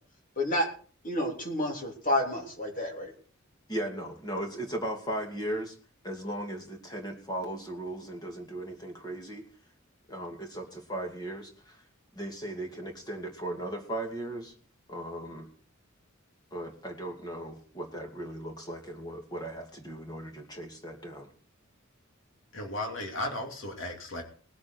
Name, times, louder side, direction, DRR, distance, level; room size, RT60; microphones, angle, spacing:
voice 1, 0.4-0.7 1.0-3.1, left 1 dB, 40° left, 1 dB, 3.4 m, -29 dB
voice 2, 3.7-5.7 6.0-9.5 10.1-11.8 12.2-14.5 14.9-15.5 16.5-21.3, right 1 dB, 20° left, 2 dB, 2.5 m, -37 dB
voice 3, 22.5-24.2, left 1 dB, 65° left, 3 dB, 2.7 m, -35 dB
20.0 x 8.5 x 4.6 m, 0.43 s
head